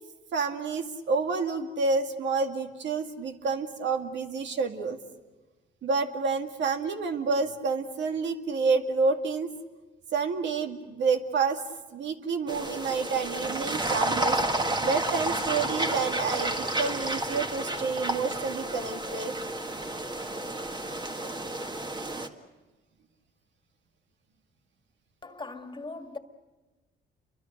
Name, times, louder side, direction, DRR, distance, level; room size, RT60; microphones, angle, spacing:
voice 1, 0.3-5.0 5.8-9.5 10.1-11.6 11.9-14.4 14.8-19.3, right 4 dB, 65° right, 2.2 m, -29 dB
sound 1, 12.5-22.3, right 1 dB, 20° right, 1.8 m, -31 dB
voice 2, 25.2-26.2, left 3 dB, 25° left, 2.0 m, -39 dB
29.5 x 24.0 x 6.7 m
cardioid pair, 90°, 20 cm